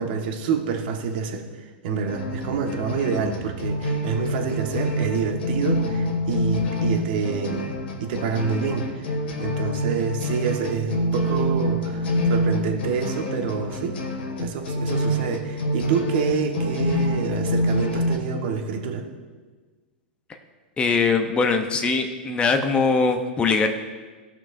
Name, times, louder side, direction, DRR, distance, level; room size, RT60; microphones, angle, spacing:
voice 1, 0.0-9.1 9.4-14.0 14.4-19.0, right 6 dB, 60° right, 3 dB, 1.4 m, -27 dB
sound 1, 2.1-18.2, equal, 80° left, 1.9 m, -26 dB
voice 2, 20.8-23.7, left 4 dB, 20° left, 5 dB, 0.8 m, -21 dB
16.0 x 6.1 x 2.6 m, 1.4 s
hypercardioid pair, 120°, 6 cm